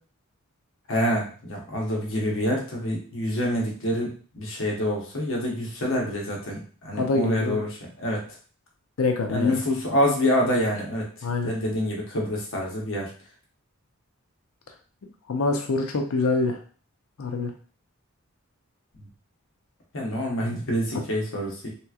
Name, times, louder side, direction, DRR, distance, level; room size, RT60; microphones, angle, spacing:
voice 1, 0.9-8.2 9.3-11.1 11.4-13.1 19.9-21.7, equal, 65° left, -1 dB, 0.9 m, -26 dB
voice 2, 6.9-7.6 9.0-9.6 11.2-11.5 15.3-16.6 17.2-17.5 20.9-21.0, left 3 dB, 85° left, 3 dB, 0.5 m, -25 dB
3.3 x 3.0 x 2.3 m, 0.40 s
head